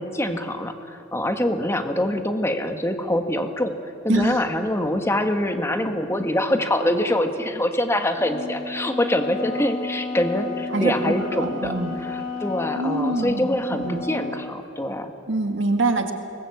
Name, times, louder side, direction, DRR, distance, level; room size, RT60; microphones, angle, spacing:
voice 1, 0.0-3.7 4.0-11.7 12.0-15.1, left 1 dB, 15° left, 6 dB, 1.5 m, -24 dB
voice 2, 4.1-4.4 10.7-12.0 12.8-13.5 13.7-14.0 15.3-16.1, right 2 dB, 70° right, 5 dB, 1.9 m, -24 dB
Wind instrument woodwind instrument, 8.1-14.4, left 3 dB, 80° left, 3.7 m, -32 dB
24.0 x 20.0 x 8.0 m, 2.7 s
head